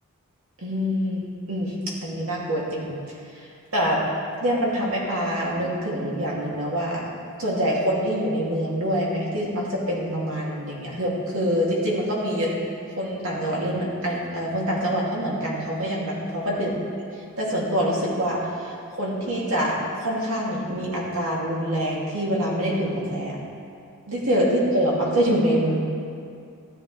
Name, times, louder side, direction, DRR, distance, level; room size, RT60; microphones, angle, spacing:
voice 1, 0.6-1.7 2.0-3.0 3.7-4.0 4.4-7.0 7.4-12.5 13.0-16.7 17.4-18.7 19.0-23.4 24.1-25.8, equal, 65° right, -5 dB, 2.7 m, -25 dB
14.5 x 11.5 x 3.3 m, 2.4 s
head